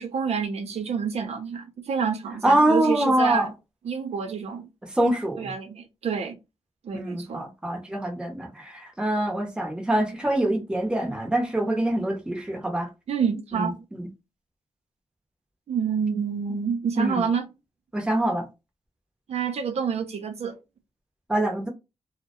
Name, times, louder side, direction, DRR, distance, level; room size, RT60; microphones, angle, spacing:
voice 1, 0.0-3.5 3.8-4.7 5.3-6.4 6.8-7.4 13.1-13.8 15.7-17.5 19.3-20.6, right 6 dB, 70° right, 0.4 m, -28 dB
voice 2, 2.4-3.5 4.9-5.5 6.9-12.9 13.5-14.1 17.0-17.3 17.9-18.5 21.3-21.7, right 1 dB, 10° right, 0.7 m, -24 dB
2.2 x 2.1 x 2.8 m
wide cardioid pair, 120°, 11 cm